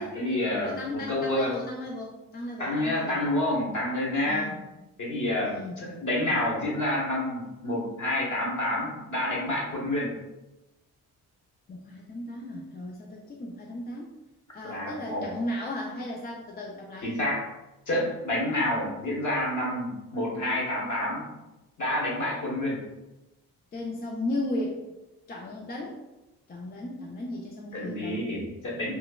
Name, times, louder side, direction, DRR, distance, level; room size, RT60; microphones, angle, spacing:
voice 1, 0.0-1.5 2.6-4.5 5.0-10.1 14.6-15.3 17.0-17.4 17.9-21.3 21.8-22.8 27.7-28.9, left 1 dB, 45° left, -4 dB, 1.2 m, -28 dB
voice 2, 0.6-3.2 4.3-4.6 5.4-5.8 11.7-14.1 14.5-17.1 23.7-24.8 25.3-26.0 26.5-28.2, left 1 dB, 25° left, -2 dB, 0.4 m, -35 dB
3.0 x 2.1 x 2.2 m, 1.0 s
supercardioid pair, 50°, 40 cm